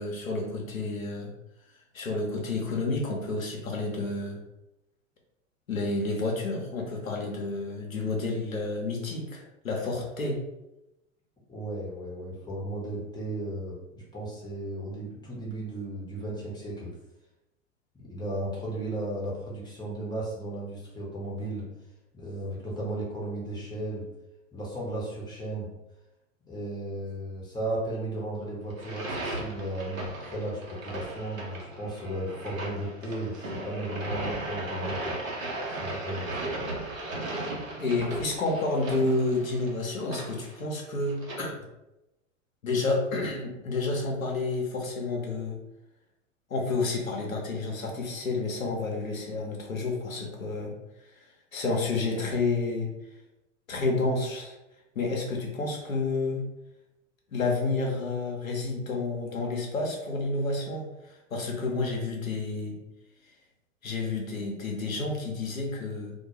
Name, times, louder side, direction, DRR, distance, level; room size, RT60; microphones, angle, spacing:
voice 1, 0.0-1.3 1.9-4.4 5.7-10.4 37.8-41.5 42.6-45.6 46.5-50.7 51.1-51.3 51.5-52.9 53.7-54.6 55.0-56.4 57.3-62.8 63.8-66.1, left 3 dB, 90° left, 0 dB, 0.6 m, -30 dB
voice 2, 11.5-16.9 18.0-21.6 22.1-24.0 24.5-25.7 26.5-35.1 35.8-36.3, right 1 dB, 10° left, -5 dB, 0.7 m, -35 dB
sound 1, 28.7-41.4, right 2 dB, 85° right, 0.8 m, -36 dB
2.2 x 2.2 x 2.8 m, 0.94 s
figure-of-eight pair, 90°, 40 cm